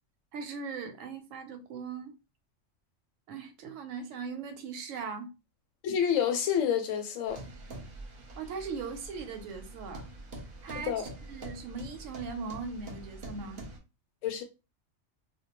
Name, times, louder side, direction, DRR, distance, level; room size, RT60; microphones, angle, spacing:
voice 1, 0.3-2.1 3.3-5.3 8.4-10.1 10.6-13.6, right 5 dB, 85° right, 1.0 m, -39 dB
voice 2, 5.8-7.4 10.9-11.0 14.2-14.4, left 8 dB, 85° left, 0.9 m, -28 dB
sound 1, 7.3-13.8, right 1 dB, 50° right, 0.8 m, -45 dB
2.2 x 2.1 x 2.9 m
omnidirectional pair, 1.3 m